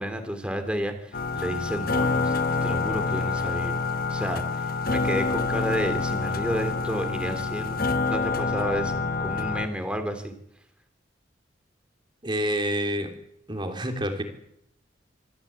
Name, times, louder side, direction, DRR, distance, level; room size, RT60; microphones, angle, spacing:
voice 1, 0.0-2.3 2.6-3.8 4.1-7.8 8.1-10.3, equal, 5° right, 6 dB, 3.0 m, -31 dB
sound 1, 1.1-9.7, left 4 dB, 50° left, 1.1 m, -27 dB
voice 2, 12.2-13.1 13.5-14.2, equal, 25° right, 5 dB, 3.1 m, -28 dB
25.5 x 14.0 x 8.7 m, 0.76 s
head